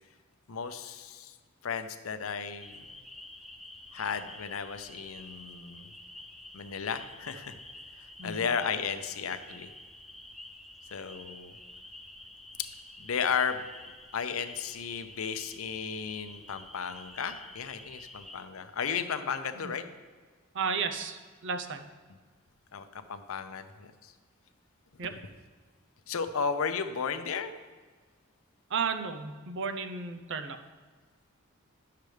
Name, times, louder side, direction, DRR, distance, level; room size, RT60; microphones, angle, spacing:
voice 1, 0.5-1.4 1.6-2.8 3.9-5.9 6.5-7.6 8.0-9.7 10.9-11.5 13.0-13.6 14.1-19.8 22.7-24.1 26.1-27.5, left 6 dB, 70° left, 9 dB, 0.6 m, -34 dB
sound 1, 2.6-18.4, left 1 dB, ahead, 0.4 m, -49 dB
voice 2, 20.5-21.9 25.0-25.1 28.7-30.6, right 5 dB, 60° right, 7 dB, 0.6 m, -33 dB
10.5 x 6.6 x 3.3 m, 1.5 s
head